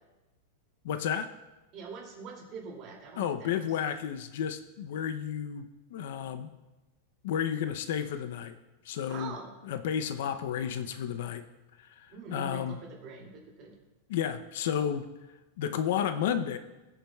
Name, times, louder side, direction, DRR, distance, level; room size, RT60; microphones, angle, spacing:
voice 1, 0.8-1.3 3.2-6.5 7.2-8.6 8.8-9.4 9.6-11.4 11.8-12.8 14.1-15.1 15.6-16.6, left 8 dB, 60° left, 10 dB, 0.6 m, -32 dB
voice 2, 1.7-3.7 9.1-9.5 12.1-13.7, right 4 dB, 35° right, -1 dB, 2.5 m, -44 dB
20.0 x 7.3 x 2.3 m, 1.1 s
supercardioid pair, 160°, 0 cm